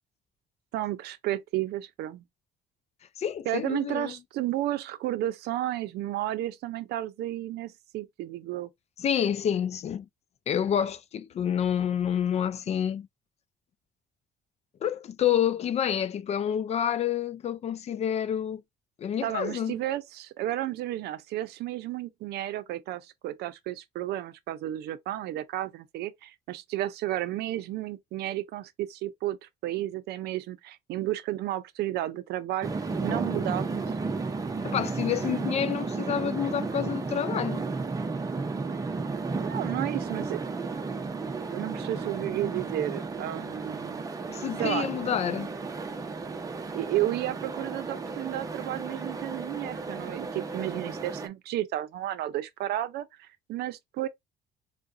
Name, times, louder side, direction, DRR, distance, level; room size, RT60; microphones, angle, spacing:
voice 1, 0.7-2.2 3.5-8.7 19.2-32.7 33.0-33.8 39.4-40.4 41.5-44.0 44.6-44.9 46.7-54.1, right 14 dB, 75° right, 0.6 m, -32 dB
voice 2, 3.2-4.1 9.0-10.1 10.5-13.1 14.8-18.6 19.0-19.8 34.6-37.6 44.3-45.5, left 9 dB, 40° left, 0.4 m, -28 dB
sound 1, 32.6-51.3, right 4 dB, 20° right, 0.6 m, -33 dB
4.7 x 2.3 x 2.6 m
cardioid pair, 110°, 17 cm